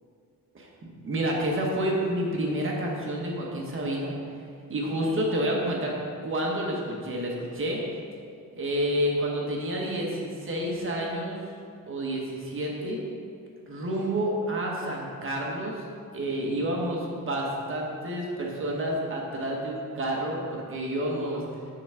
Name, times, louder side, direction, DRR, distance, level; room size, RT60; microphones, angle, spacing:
voice 1, 1.0-4.1 4.7-5.9 6.2-7.8 8.5-11.4 11.9-13.0 13.7-15.9 16.1-21.4, right 1 dB, 40° right, -2 dB, 1.3 m, -29 dB
6.9 x 3.9 x 5.8 m, 2.3 s
wide cardioid pair, 155°, 32 cm